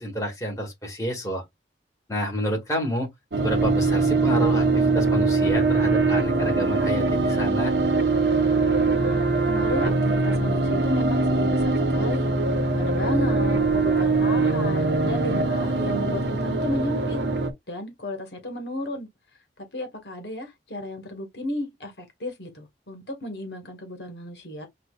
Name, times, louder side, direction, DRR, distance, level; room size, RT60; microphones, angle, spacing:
voice 1, 0.0-1.4 2.1-3.1 3.4-7.7, equal, 20° left, 2.0 m, -29 dB
sound 1, 3.3-17.5, right 3 dB, 85° right, 1.1 m, -22 dB
voice 2, 8.8-12.3 12.8-17.2 17.7-19.1 19.7-24.7, left 1 dB, 75° left, 1.7 m, -33 dB
7.6 x 2.8 x 2.4 m
head